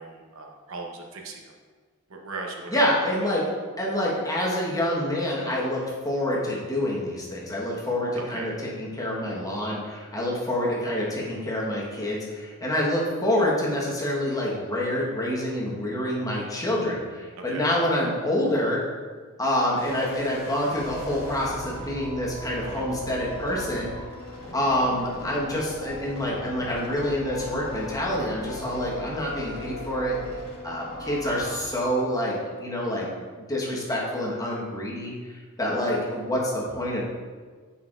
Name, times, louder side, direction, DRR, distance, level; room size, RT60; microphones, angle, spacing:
voice 1, 0.0-1.5 2.1-2.8 8.2-8.5 17.4-17.7 22.7-22.8, right 3 dB, 70° right, 1 dB, 0.8 m, -38 dB
voice 2, 2.7-3.4 3.8-18.8 19.4-23.9 24.5-30.2 30.6-33.1 33.4-35.1 35.6-37.0, left 1 dB, 15° left, -5 dB, 1.1 m, -27 dB
sound 1, 19.8-31.6, left 1 dB, 85° left, 1.3 m, -38 dB
7.4 x 5.5 x 2.4 m, 1.5 s
head